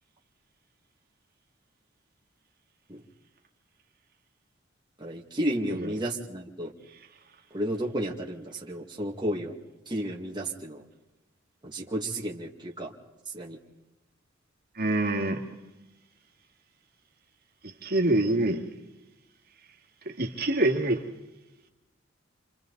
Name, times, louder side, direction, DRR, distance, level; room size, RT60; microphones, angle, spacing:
voice 1, 5.0-6.7 7.5-9.5 9.9-10.8 11.6-12.9 13.3-13.6, right 1 dB, 25° right, 2.1 m, -32 dB
voice 2, 14.8-15.4 17.8-18.6 20.1-21.0, right 1 dB, 50° right, 2.2 m, -25 dB
29.0 x 26.5 x 4.1 m
head